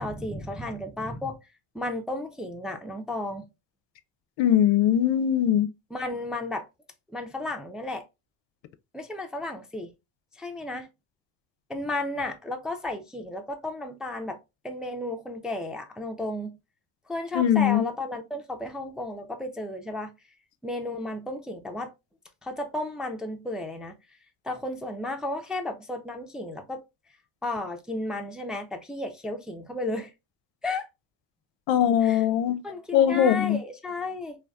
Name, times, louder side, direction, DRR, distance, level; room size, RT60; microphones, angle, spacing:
voice 1, 0.0-1.4 1.7-3.4 5.9-6.7 7.1-8.0 8.9-9.9 10.4-10.9 11.7-14.4 14.6-16.5 17.1-20.1 20.6-21.9 22.4-24.0 24.4-26.8 27.4-30.1 30.6-30.9 32.0-32.2 32.6-34.4, left 2 dB, ahead, 0.4 m, -33 dB
voice 2, 4.4-5.7 17.3-17.9 31.7-32.6 32.9-33.6, left 10 dB, 65° left, 0.5 m, -21 dB
3.3 x 2.4 x 2.3 m
supercardioid pair, 70°, 48 cm